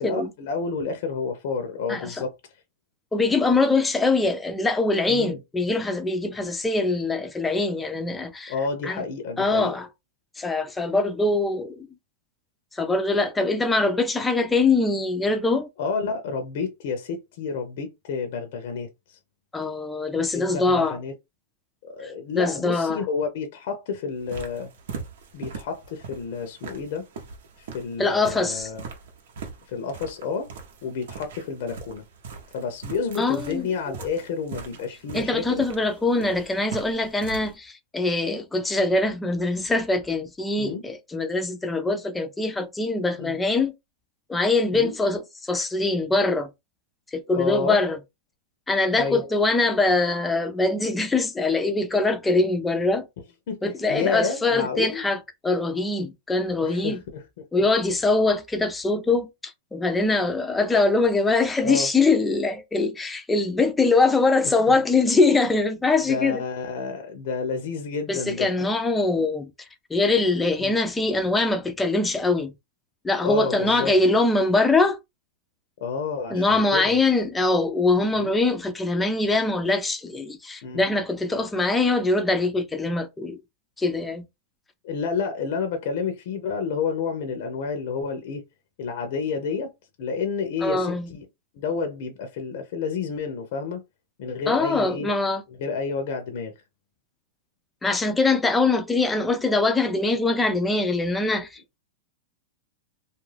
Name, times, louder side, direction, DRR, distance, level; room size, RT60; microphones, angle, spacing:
voice 1, 0.0-2.3 5.1-5.4 8.5-9.8 15.8-19.2 20.1-21.1 21.8-24.7 25.3-27.1 27.6-28.8 29.7-30.5 30.8-32.0 32.5-35.6 40.6-40.8 43.2-43.4 44.7-44.9 47.4-47.8 49.0-49.2 53.5-53.6 53.9-55.1 56.6-57.2 61.6-61.9 64.4-64.5 66.1-68.5 70.6-70.8 73.2-73.9 75.8-77.0 78.1-78.3 80.6-80.8 84.8-88.4 88.8-89.7 90.0-91.2 91.5-93.8 94.2-95.1 95.6-96.5, left 5 dB, 60° left, 0.6 m, -30 dB
voice 2, 3.1-8.5 8.8-9.0 9.4-9.9 10.4-11.9 12.7-15.7 19.5-21.0 22.0-23.0 28.0-28.7 33.2-33.7 35.1-43.7 44.3-46.5 47.1-48.0 48.7-53.1 53.6-55.2 55.4-57.0 57.5-66.4 68.1-69.5 69.9-72.5 73.0-75.0 76.3-83.4 83.8-84.2 90.6-91.1 94.5-95.4 97.8-101.8, left 3 dB, 10° left, 0.5 m, -23 dB
sound 1, 24.1-37.5, right 5 dB, 75° right, 0.8 m, -41 dB
2.4 x 2.2 x 3.2 m
hypercardioid pair, 140°, 0 cm